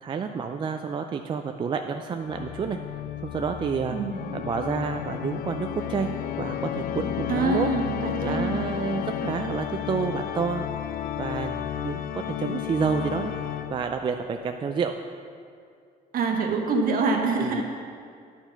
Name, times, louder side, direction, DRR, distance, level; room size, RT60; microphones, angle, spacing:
voice 1, 0.0-2.8 3.2-4.0 4.3-7.7 8.2-10.7 11.2-13.3 13.7-15.0 17.4-17.6, right 6 dB, 30° right, 5 dB, 0.3 m, -29 dB
Organ, 2.2-14.0, left 10 dB, 60° left, 0.4 m, -32 dB
voice 2, 3.9-4.2 7.3-8.6 16.1-17.6, right 3 dB, 60° right, 2 dB, 1.2 m, -25 dB
9.8 x 4.5 x 5.7 m, 2.3 s
cardioid pair, 110°, 17 cm